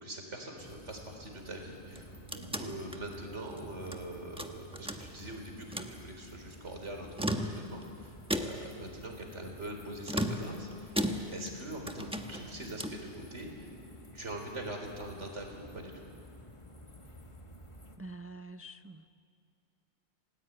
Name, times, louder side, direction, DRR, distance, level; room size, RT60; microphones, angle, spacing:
voice 1, 0.0-11.0 11.3-13.7 14.1-16.1, right 1 dB, 80° right, 2 dB, 4.4 m, -43 dB
sound 1, 0.6-18.0, equal, 25° left, 1.7 m, -52 dB
sound 2, 1.8-4.0 4.4-5.3 5.6-6.0 7.0-7.9 8.3-8.8 10.0-11.6 11.9-13.1, equal, 5° right, 1.2 m, -36 dB
voice 2, 18.0-19.1, right 2 dB, 25° right, 10 dB, 0.3 m, -46 dB
28.0 x 19.0 x 9.1 m, 2.4 s
omnidirectional pair, 1.2 m